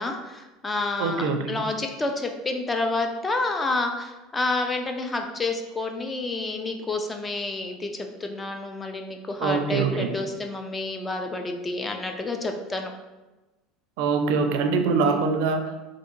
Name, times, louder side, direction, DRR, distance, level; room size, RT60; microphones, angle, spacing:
voice 1, 0.0-12.9 15.0-15.2, left 2 dB, 20° left, 4 dB, 0.4 m, -29 dB
voice 2, 1.0-1.6 9.4-10.1 14.0-15.9, right 4 dB, 75° right, 6 dB, 0.4 m, -24 dB
3.4 x 2.5 x 3.0 m, 1.1 s
supercardioid pair, 115°, 0 cm